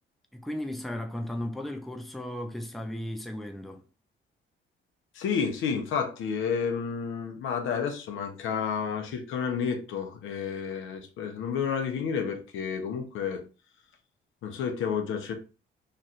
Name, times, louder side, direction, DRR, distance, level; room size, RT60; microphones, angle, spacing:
voice 1, 0.3-3.8, left 1 dB, ahead, 0.7 m, -35 dB
voice 2, 5.1-13.4 14.4-15.3, left 6 dB, 80° left, 0.9 m, -30 dB
3.2 x 2.5 x 4.1 m
cardioid pair, 90°, 20 cm